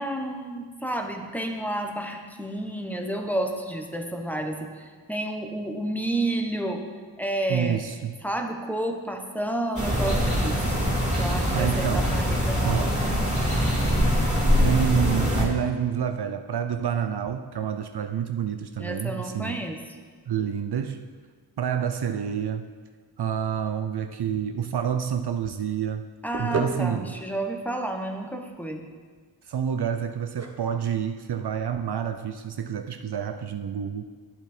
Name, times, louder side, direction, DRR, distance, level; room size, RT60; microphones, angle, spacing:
voice 1, 0.0-6.8 7.2-7.8 8.2-10.8 11.2-13.0 18.8-19.8 26.2-28.8, right 1 dB, 5° left, 3 dB, 1.2 m, -30 dB
voice 2, 7.5-8.1 11.5-12.2 12.6-13.1 14.6-19.7 20.3-21.0 21.6-22.7 23.2-26.1 26.4-27.1 29.5-34.1, right 8 dB, 60° right, 8 dB, 0.6 m, -28 dB
sound 1, 9.8-15.5, equal, 15° right, 2.8 m, -23 dB
sound 2, 26.2-32.9, right 3 dB, 35° right, 1.1 m, -38 dB
10.5 x 8.0 x 4.5 m, 1.5 s
cardioid pair, 60°, 45 cm